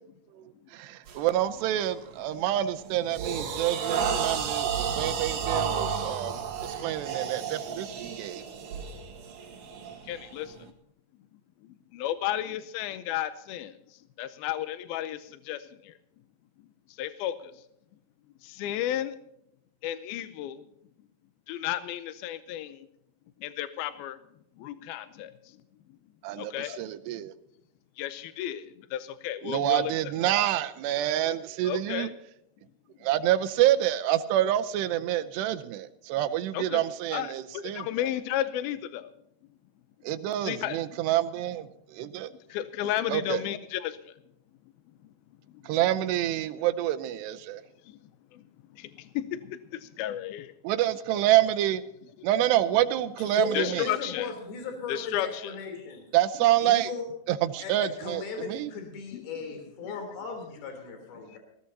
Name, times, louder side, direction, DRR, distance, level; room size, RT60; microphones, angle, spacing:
voice 1, 0.3-8.4 26.2-27.3 29.4-32.1 33.0-37.9 40.0-42.3 43.1-43.5 45.6-47.6 50.6-51.8 52.2-53.9 56.1-56.9 57.3-58.7, right 13 dB, 80° right, 10 dB, 2.7 m, -27 dB
sound 1, 1.1-1.3 1.8-2.1 2.5-10.6, right 7 dB, 55° right, 2.9 m, -32 dB
voice 2, 10.1-10.6 11.6-13.7 14.2-15.9 17.0-17.5 18.4-19.2 19.8-20.6 21.5-22.9 23.4-24.2 24.6-25.3 26.4-26.8 28.0-29.9 30.3-30.4 31.6-32.1 36.5-36.8 37.1-39.1 40.4-40.8 42.5-44.0 48.3-48.4 48.7-50.5 53.5-54.3 54.9-55.5, left 12 dB, 80° left, 12 dB, 2.2 m, -33 dB
voice 3, 53.2-56.0 56.6-57.1 57.6-61.4, left 5 dB, 60° left, 4 dB, 5.2 m, -37 dB
20.0 x 16.5 x 2.8 m, 0.77 s
omnidirectional pair, 5.2 m